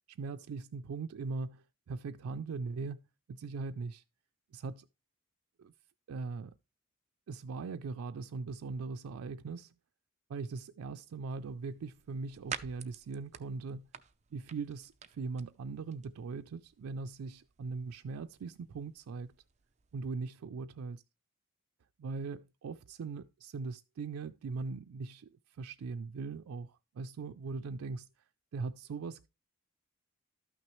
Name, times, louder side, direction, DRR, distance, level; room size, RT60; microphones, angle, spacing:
voice 1, 0.1-3.0 3.3-4.0 4.5-4.9 5.6-5.7 6.1-6.6 7.3-9.7 10.3-13.9 14.3-19.3 19.9-21.0 22.0-28.1 28.5-29.3, right 4 dB, 90° right, 0.4 m, -40 dB
sound 1, 11.3-19.9, right 7 dB, 35° right, 0.5 m, -50 dB
12.5 x 6.0 x 3.1 m
head